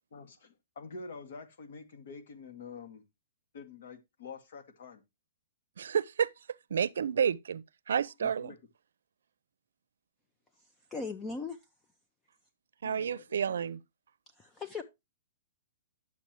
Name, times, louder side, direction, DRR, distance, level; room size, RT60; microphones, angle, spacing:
voice 1, 0.1-3.0 3.5-5.0 8.2-8.6 12.8-13.6, left 4 dB, 60° left, 1.9 m, -47 dB
voice 2, 5.8-6.3 6.7-8.6 12.8-13.8, right 7 dB, 90° right, 0.5 m, -30 dB
voice 3, 10.9-11.6 14.4-14.8, left 4 dB, 10° left, 0.6 m, -38 dB
10.5 x 7.0 x 3.1 m
hypercardioid pair, 170°, 0 cm